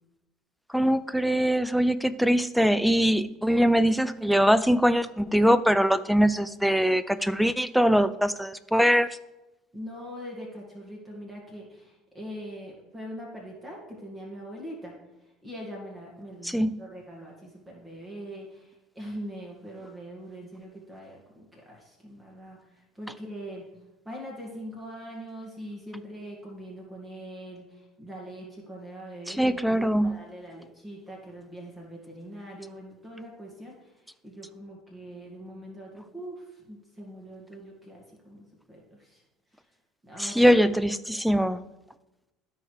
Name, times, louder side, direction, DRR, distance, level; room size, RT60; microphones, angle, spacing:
voice 1, 0.7-9.1 16.4-16.8 29.3-30.2 40.2-41.6, equal, ahead, 14 dB, 0.4 m, -22 dB
voice 2, 9.7-14.9 15.4-22.6 23.0-23.6 24.1-33.7 34.2-39.2 40.0-40.6, equal, 20° right, -2 dB, 2.0 m, -42 dB
13.0 x 4.6 x 3.3 m, 1.0 s
supercardioid pair, 90°, 0 cm